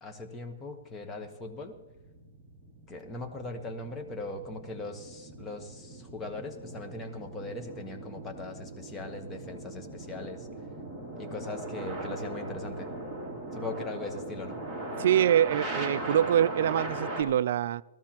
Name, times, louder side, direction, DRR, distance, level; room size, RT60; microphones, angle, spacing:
voice 1, 0.0-1.7 2.9-10.5 11.2-12.9 13.5-14.6, left 2 dB, 15° left, 4 dB, 1.1 m, -40 dB
sound 1, 1.3-17.2, right 2 dB, 5° right, 2.2 m, -39 dB
voice 2, 15.0-17.8, right 10 dB, 55° right, 15 dB, 0.3 m, -25 dB
18.0 x 14.0 x 2.9 m, 1.1 s
hypercardioid pair, 160°, 0 cm